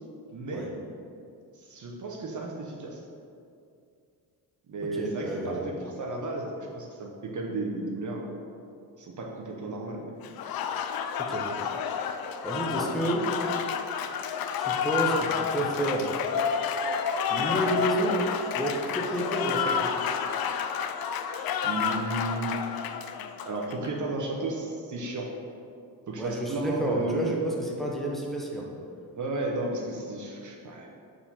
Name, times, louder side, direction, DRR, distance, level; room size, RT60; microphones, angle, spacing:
voice 1, 0.3-0.7 1.6-3.0 4.7-8.3 9.0-10.1 12.7-12.9 21.6-22.6 23.4-25.3 26.1-27.3 29.1-30.9, right 2 dB, 50° right, 0 dB, 1.0 m, -33 dB
voice 2, 4.8-5.6 11.2-11.5 12.4-13.3 14.6-16.1 17.3-18.2 18.6-19.9 26.2-28.7, right 1 dB, ahead, -3 dB, 1.2 m, -30 dB
Applause, 10.2-23.9, left 7 dB, 65° left, 0.5 m, -30 dB
4.9 x 4.6 x 5.7 m, 2.5 s
cardioid pair, 75°, 40 cm